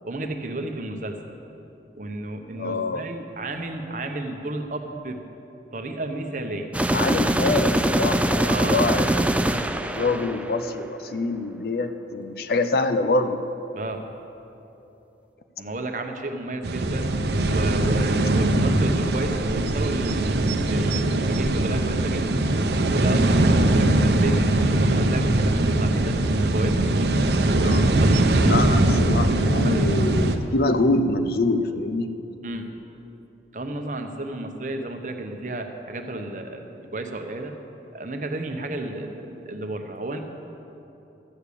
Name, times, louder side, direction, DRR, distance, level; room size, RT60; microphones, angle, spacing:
voice 1, 0.0-1.2 2.0-5.2 5.7-6.7 8.5-8.9 13.7-14.0 15.6-17.1 17.5-20.4 20.7-22.3 22.9-26.2 26.5-27.2 28.0-28.7 29.6-29.9 32.4-32.7 33.5-37.5 37.9-40.2, right 2 dB, 45° right, 5 dB, 0.9 m, -32 dB
voice 2, 2.5-3.1 6.9-9.1 9.5-13.4 27.5-27.9 28.4-32.1, left 2 dB, 60° left, 9 dB, 0.6 m, -25 dB
sound 1, 6.7-10.8, right 1 dB, 5° right, 0.3 m, -23 dB
sound 2, 16.6-30.4, right 1 dB, 70° right, 0.7 m, -21 dB
13.0 x 6.8 x 8.4 m, 3.0 s
head